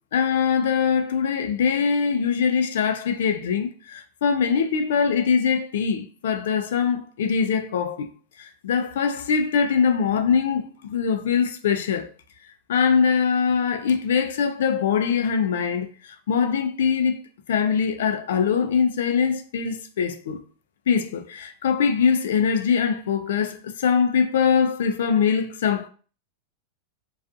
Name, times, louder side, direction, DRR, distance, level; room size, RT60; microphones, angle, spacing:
voice 1, 0.1-8.1 8.4-12.1 12.7-15.9 16.3-17.2 17.5-20.4 20.9-25.9, left 6 dB, 80° left, 0.4 m, -22 dB
2.4 x 2.3 x 2.5 m
supercardioid pair, 165°, 0 cm